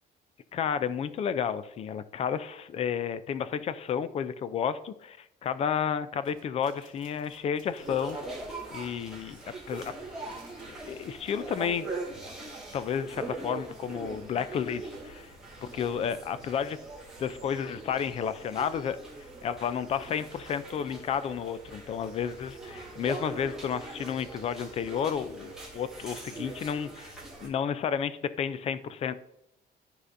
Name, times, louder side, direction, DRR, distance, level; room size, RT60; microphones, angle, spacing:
voice 1, 0.5-8.2 8.7-9.4 9.7-9.9 10.7-11.9 12.7-15.3 15.6-16.8 17.2-19.0 19.4-27.1 27.4-29.1, left 7 dB, 35° left, 14 dB, 0.4 m, -31 dB
sound 1, 6.2-11.6, right 3 dB, 25° right, 1.7 m, -59 dB
sound 2, 7.8-27.5, right 2 dB, 5° right, 1.7 m, -42 dB
12.5 x 4.9 x 2.6 m, 0.80 s
cardioid pair, 175°, 19 cm